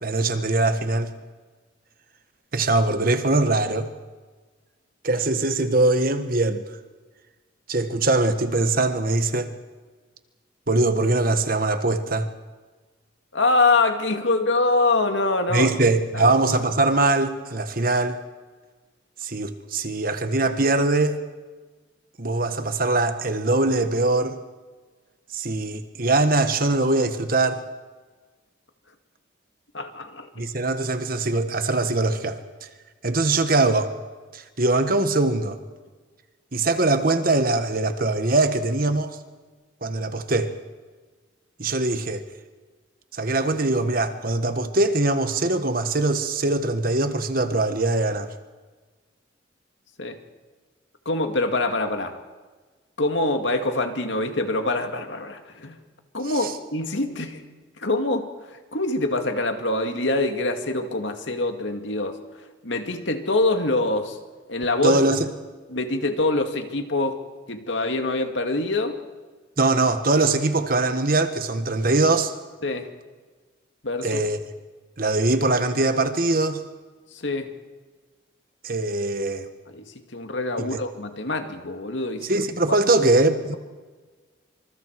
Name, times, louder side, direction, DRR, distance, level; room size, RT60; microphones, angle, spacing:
voice 1, 0.0-1.1 2.5-3.9 5.0-6.6 7.7-9.5 10.7-12.3 15.5-18.2 19.2-21.2 22.2-24.4 25.3-27.6 30.3-32.4 33.0-33.9 34.3-35.6 36.5-39.2 39.8-40.5 41.6-42.2 43.1-48.3 56.3-56.5 64.8-65.3 69.6-72.3 74.0-74.4 75.0-76.6 78.6-79.5 80.6-80.8 82.2-83.6, right 2 dB, 45° right, 9 dB, 1.5 m, -22 dB
voice 2, 13.3-15.7 16.1-16.3 29.7-30.5 50.0-50.2 51.1-52.2 53.0-55.8 56.1-57.4 57.8-64.2 64.5-65.1 65.7-67.2 67.5-69.0 72.6-72.9 73.8-74.2 77.1-77.5 79.7-82.3, left 2 dB, 70° left, 6 dB, 2.3 m, -25 dB
27.0 x 26.5 x 4.8 m, 1.3 s
head